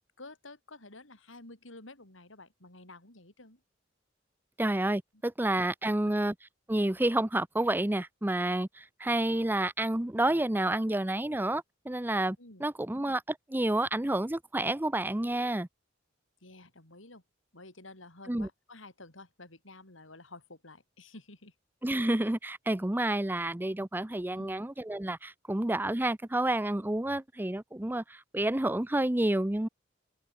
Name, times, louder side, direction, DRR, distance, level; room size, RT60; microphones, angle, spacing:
voice 1, 0.2-3.6 6.0-6.2 12.4-13.1 16.4-17.2 17.5-21.5 24.4-24.6, left 2 dB, 80° left, 6.9 m, -51 dB
voice 2, 4.6-6.3 6.7-13.2 13.5-15.7 18.3-18.5 21.8-29.7, right 1 dB, 10° right, 0.7 m, -29 dB
head